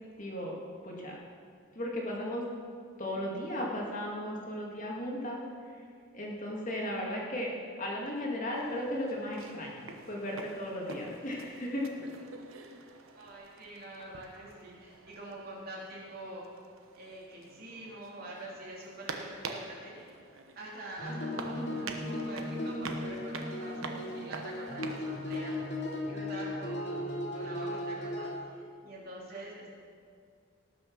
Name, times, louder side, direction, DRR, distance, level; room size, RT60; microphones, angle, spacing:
voice 1, 0.2-0.6 0.8-1.2 1.7-2.5 3.0-5.4 6.1-7.5 7.8-11.9, left 1 dB, 40° left, -2 dB, 2.1 m, -35 dB
sound 1, 8.5-26.0, right 4 dB, 85° right, 1.1 m, -47 dB
voice 2, 13.1-16.5 17.0-20.1 20.5-25.6 26.1-29.7, right 1 dB, 45° right, -5 dB, 3.2 m, -45 dB
sound 2, 21.0-28.4, left 1 dB, 55° left, 2.7 m, -36 dB
18.5 x 6.3 x 6.0 m, 2.2 s
head